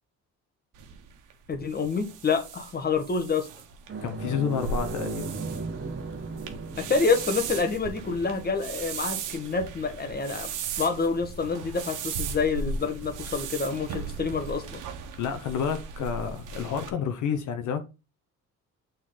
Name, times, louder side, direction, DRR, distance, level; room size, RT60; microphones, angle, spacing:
sound 1, 0.7-16.9, right 5 dB, 85° right, 1.3 m, -37 dB
voice 1, 1.5-3.5 6.8-10.5 10.8-14.8, left 4 dB, 30° left, 1.5 m, -27 dB
sound 2, 3.9-12.8 13.2-13.3 15.4-15.5, right 4 dB, 40° right, 1.4 m, -39 dB
voice 2, 4.0-5.4 15.2-17.8, left 7 dB, 80° left, 1.1 m, -29 dB
6.4 x 4.3 x 3.9 m
cardioid pair, 90°, 30 cm